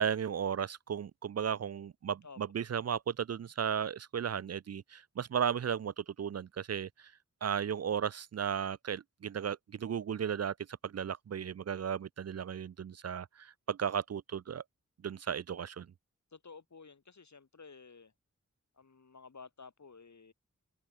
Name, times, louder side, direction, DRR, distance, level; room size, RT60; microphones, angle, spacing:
voice 1, 0.0-7.1 7.4-10.5 10.8-14.6 15.0-15.9, right 8 dB, 55° right, 0.5 m, -35 dB
voice 2, 16.3-18.1 18.8-20.3, left 4 dB, 65° left, 3.1 m, -53 dB
open air
wide cardioid pair, 70°, 30 cm